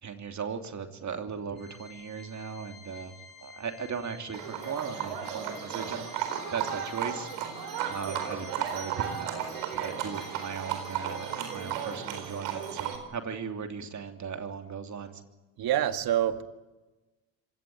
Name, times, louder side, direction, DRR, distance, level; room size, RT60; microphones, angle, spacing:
voice 1, 0.0-3.1 3.4-7.5 7.8-9.3 9.7-15.2, right 6 dB, 40° right, 3.0 m, -38 dB
Organ, 1.6-12.2, left 6 dB, 55° left, 7.5 m, -51 dB
Livestock farm animals working animals, 4.3-13.0, right 9 dB, 80° right, 4.3 m, -34 dB
voice 2, 15.6-16.4, right 11 dB, 60° right, 1.9 m, -26 dB
25.5 x 17.0 x 9.5 m
supercardioid pair, 70°, 42 cm